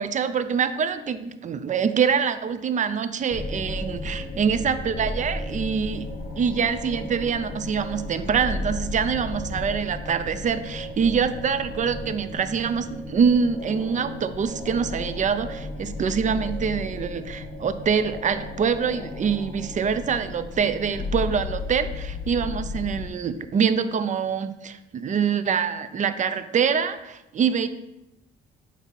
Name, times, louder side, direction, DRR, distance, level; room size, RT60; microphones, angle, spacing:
voice 1, 0.0-6.1 6.4-27.7, right 6 dB, 40° right, 11 dB, 0.5 m, -25 dB
sound 1, 3.3-23.1, left 2 dB, 55° left, 1.2 m, -34 dB
8.1 x 2.7 x 4.5 m, 0.93 s
cardioid pair, 90°, 20 cm